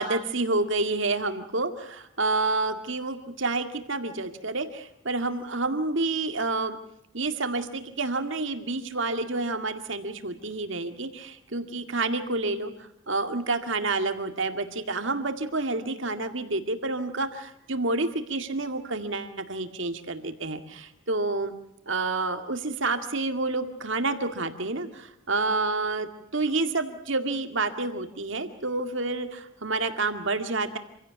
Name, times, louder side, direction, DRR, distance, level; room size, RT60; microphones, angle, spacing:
voice 1, 0.0-6.8 7.1-12.7 13.1-21.5 21.9-26.1 26.3-30.8, right 3 dB, 65° right, 8 dB, 2.1 m, -29 dB
27.5 x 16.5 x 8.2 m, 0.78 s
head